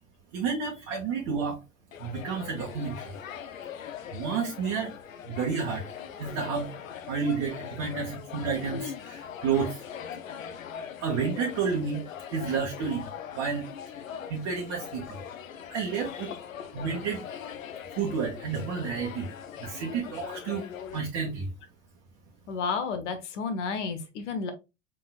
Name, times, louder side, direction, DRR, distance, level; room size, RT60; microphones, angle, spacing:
voice 1, 0.3-1.6 2.0-3.2 4.1-4.9 5.3-5.8 6.2-6.7 7.1-9.8 11.0-13.1 13.3-13.7 14.3-15.2 15.7-16.3 16.7-17.3 18.0-19.3 19.6-20.7 20.9-21.5, right 5 dB, 40° right, 1.3 m, -30 dB
sound 1, 1.9-21.0, left 8 dB, 75° left, 0.7 m, -41 dB
voice 2, 22.5-24.5, left 5 dB, 60° left, 1.2 m, -32 dB
5.1 x 3.8 x 2.4 m
figure-of-eight pair, 85°, 40 cm